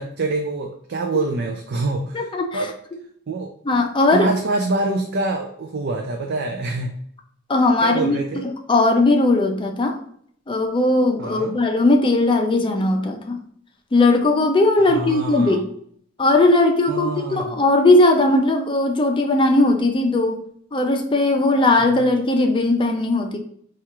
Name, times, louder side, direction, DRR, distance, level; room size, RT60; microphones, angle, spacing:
voice 1, 0.0-2.3 2.5-2.7 3.3-3.5 4.1-7.0 7.8-8.5 11.2-11.5 14.9-15.6 16.9-17.5 21.8-22.0, right 2 dB, 55° right, 3 dB, 0.4 m, -25 dB
voice 2, 2.1-2.7 3.6-4.3 7.5-10.0 10.5-13.4 13.9-15.7 16.2-20.4 20.7-23.4, left 2 dB, 25° left, 4 dB, 0.5 m, -18 dB
4.4 x 2.4 x 2.9 m, 0.63 s
head